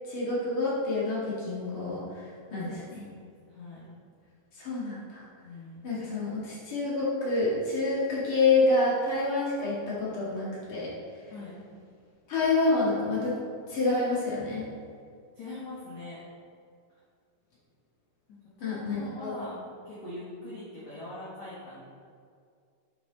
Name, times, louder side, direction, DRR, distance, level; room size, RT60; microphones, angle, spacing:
voice 1, 0.1-2.2 2.5-3.0 4.5-5.2 5.8-10.9 12.3-13.3 13.7-14.6 18.6-19.3, left 3 dB, 60° left, -7 dB, 1.3 m, -28 dB
voice 2, 2.7-3.9 5.4-5.9 11.3-11.6 15.3-16.2 18.3-19.6 19.8-21.8, left 2 dB, 75° left, -8 dB, 1.6 m, -43 dB
9.6 x 6.9 x 3.9 m, 2.3 s
omnidirectional pair, 5.7 m